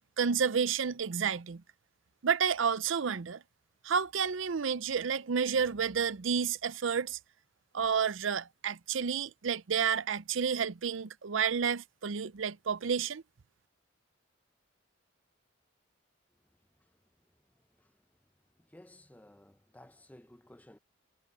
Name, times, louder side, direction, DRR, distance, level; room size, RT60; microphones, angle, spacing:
voice 1, 0.2-1.6 2.2-3.4 3.8-7.2 7.7-13.2, right 6 dB, 70° right, 0.6 m, -30 dB
voice 2, 18.7-20.8, left 1 dB, 10° left, 0.6 m, -55 dB
head